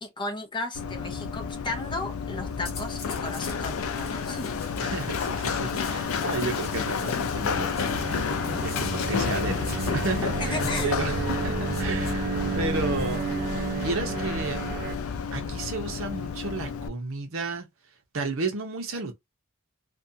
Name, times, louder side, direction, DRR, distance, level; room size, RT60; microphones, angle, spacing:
voice 1, 0.0-4.5 10.4-11.0, left 2 dB, 25° left, 0.6 m, -34 dB
Run, 0.7-16.9, left 6 dB, 85° left, 0.4 m, -30 dB
sound 1, 2.6-3.6 3.9-4.9 5.4-7.1 7.7-8.0 8.7-8.9 9.6-9.9 10.6-10.9 11.7-12.1 12.9-13.8 14.4-15.0, left 5 dB, 50° left, 0.9 m, -44 dB
voice 2, 4.8-13.2 13.7-14.6 15.3-17.7 18.1-19.1, right 3 dB, 70° right, 0.8 m, -33 dB
sound 2, 7.5-15.0, right 5 dB, 40° right, 0.3 m, -32 dB
2.5 x 2.3 x 2.6 m
head